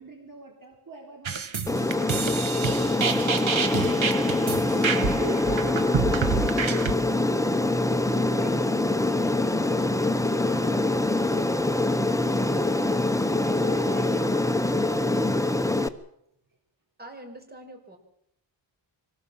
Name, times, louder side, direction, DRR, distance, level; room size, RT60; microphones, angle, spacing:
voice 1, 0.0-1.5 3.7-7.8 8.3-12.7 13.4-14.5, right 3 dB, 45° right, 2 dB, 3.5 m, -43 dB
sound 1, 1.3-6.9, right 5 dB, 80° right, 1.8 m, -28 dB
Aircraft, 1.7-15.9, left 2 dB, 5° left, 1.1 m, -24 dB
voice 2, 17.0-18.0, right 1 dB, 20° right, 4 dB, 5.7 m, -44 dB
24.5 x 18.5 x 7.5 m, 0.75 s
wide cardioid pair, 95°, 46 cm